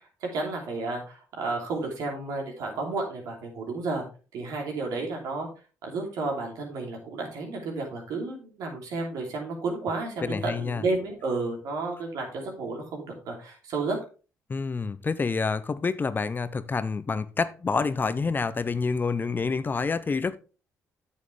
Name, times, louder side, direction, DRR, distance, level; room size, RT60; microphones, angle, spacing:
voice 1, 0.2-4.0 4.3-5.5 5.8-14.0, right 3 dB, 80° right, 2.9 m, -32 dB
voice 2, 10.2-10.8 14.5-20.4, left 4 dB, 30° left, 0.6 m, -28 dB
8.4 x 7.2 x 3.3 m
supercardioid pair, 70°, 6 cm